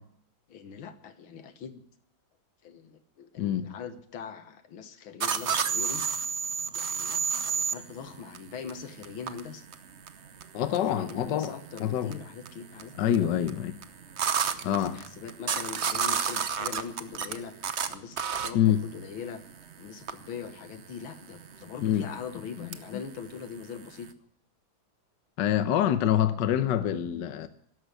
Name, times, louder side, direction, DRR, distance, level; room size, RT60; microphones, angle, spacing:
voice 1, 0.5-1.8 2.6-6.0 6.7-9.6 10.7-13.4 14.2-17.5 17.9-19.4 19.8-24.1, left 6 dB, 85° left, 2.1 m, -42 dB
voice 2, 3.4-3.7 10.5-11.5 11.8-12.1 13.0-13.7 14.6-15.0 18.5-18.8 21.8-22.0 22.6-22.7 25.4-27.5, left 11 dB, 65° left, 1.4 m, -26 dB
sound 1, 5.2-24.1, right 7 dB, 45° right, 0.9 m, -32 dB
13.0 x 11.0 x 9.4 m
omnidirectional pair, 2.2 m